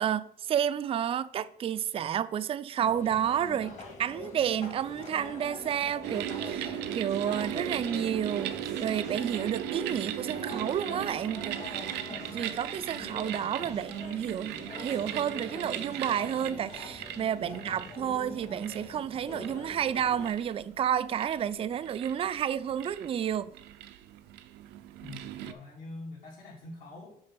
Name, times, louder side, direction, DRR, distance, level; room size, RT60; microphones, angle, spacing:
voice 1, 0.0-8.5 8.8-23.5, right 9 dB, 35° right, 0.4 m, -31 dB
sound 1, 2.8-20.3, left 2 dB, 45° left, 2.2 m, -44 dB
sound 2, 6.0-25.5, right 11 dB, 90° right, 0.5 m, -38 dB
voice 2, 25.0-27.2, left 2 dB, 60° left, 2.1 m, -45 dB
6.4 x 4.2 x 6.0 m
cardioid pair, 110°, 17 cm